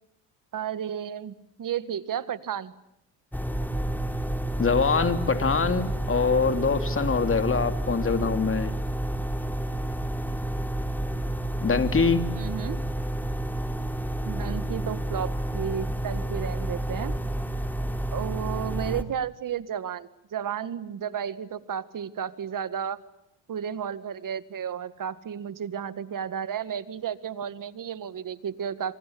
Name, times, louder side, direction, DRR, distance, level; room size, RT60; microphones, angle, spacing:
voice 1, 0.5-1.3 1.6-2.7 12.4-12.8 14.3-17.2 18.1-23.0 23.5-28.9, right 8 dB, 55° right, 14 dB, 1.9 m, -33 dB
sound 1, 3.3-19.0, right 1 dB, 5° left, 3.2 m, -30 dB
voice 2, 4.6-8.7 11.6-12.2, left 5 dB, 30° left, 8 dB, 3.2 m, -24 dB
27.0 x 25.0 x 8.6 m, 0.79 s
supercardioid pair, 65°, 40 cm